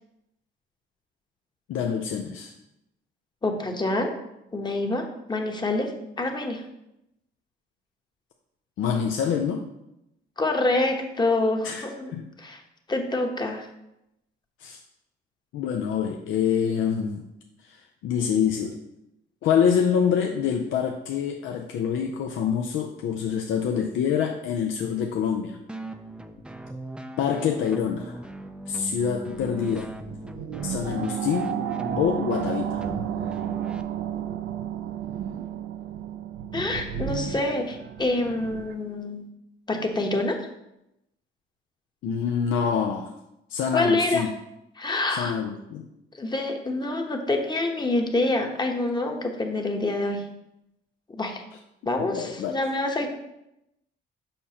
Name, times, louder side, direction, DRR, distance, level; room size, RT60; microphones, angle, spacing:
voice 1, 1.7-2.5 8.8-9.7 11.6-11.8 12.1-12.3 14.6-14.8 15.5-17.2 17.6-18.8 19.4-25.6 27.2-28.2 28.7-29.9 30.6-31.6 32.0-32.9 42.0-43.1 43.5-44.3 45.1-45.9 51.8-52.5, left 7 dB, 80° left, 2 dB, 0.6 m, -26 dB
voice 2, 3.4-4.1 4.5-5.9 6.2-6.6 10.4-12.1 12.4-12.6 12.9-13.7 36.5-39.3 39.7-40.4 43.7-44.2 44.8-45.4 46.2-50.2 51.2-51.4 51.9-53.1, left 2 dB, 20° left, 3 dB, 1.0 m, -26 dB
sound 1, 25.7-33.8, right 1 dB, 5° right, 0.4 m, -39 dB
sound 2, 29.3-38.7, right 10 dB, 75° right, 0.5 m, -32 dB
6.7 x 5.4 x 2.9 m, 0.86 s
cardioid pair, 90°, 20 cm